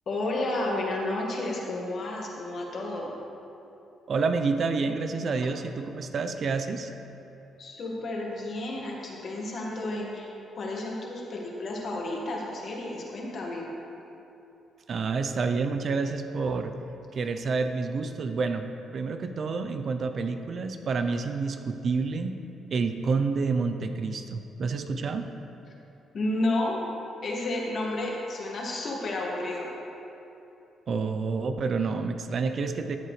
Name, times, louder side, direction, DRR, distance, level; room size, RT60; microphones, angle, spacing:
voice 1, 0.1-3.2 7.6-13.7 26.1-26.8 27.2-29.7, left 2 dB, 55° left, -2 dB, 1.8 m, -31 dB
voice 2, 4.1-6.9 14.9-16.7 17.1-18.7 18.9-22.4 22.7-25.3 30.9-33.0, right 4 dB, 50° right, 7 dB, 0.6 m, -28 dB
13.5 x 7.5 x 3.3 m, 2.9 s
cardioid pair, 90°, 0 cm